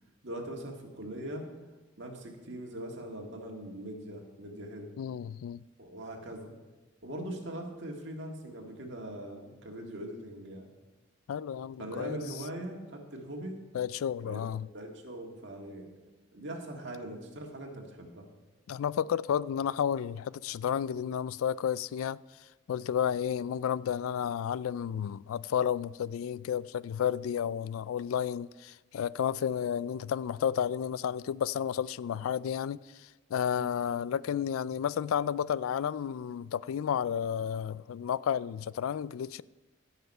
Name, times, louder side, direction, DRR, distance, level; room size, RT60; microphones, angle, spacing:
voice 1, 0.2-1.4 2.0-5.0 5.8-6.5 7.0-10.7 11.8-13.6 14.2-14.5 14.7-15.9 16.3-18.2 33.5-33.7, right 1 dB, 60° right, 1.8 m, -41 dB
voice 2, 5.0-5.6 11.3-12.2 13.7-14.7 18.7-22.2 22.7-39.4, left 8 dB, 90° left, 0.3 m, -32 dB
16.0 x 5.8 x 5.4 m
head